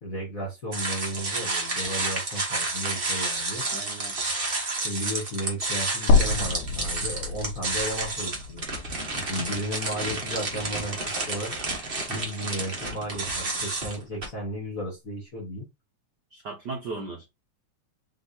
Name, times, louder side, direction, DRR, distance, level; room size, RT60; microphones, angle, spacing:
voice 1, 0.0-3.6 4.8-8.7 9.1-11.5 12.1-15.7, right 1 dB, 40° left, 1.3 m, -34 dB
sound 1, 0.7-14.3, right 2 dB, 45° right, 0.6 m, -30 dB
voice 2, 3.6-4.2 16.3-17.3, right 3 dB, 80° right, 0.9 m, -36 dB
sound 2, 6.1-10.2 10.6-10.7 12.1-12.2, left 4 dB, 90° left, 2.3 m, -27 dB
5.9 x 3.0 x 2.7 m
omnidirectional pair, 3.5 m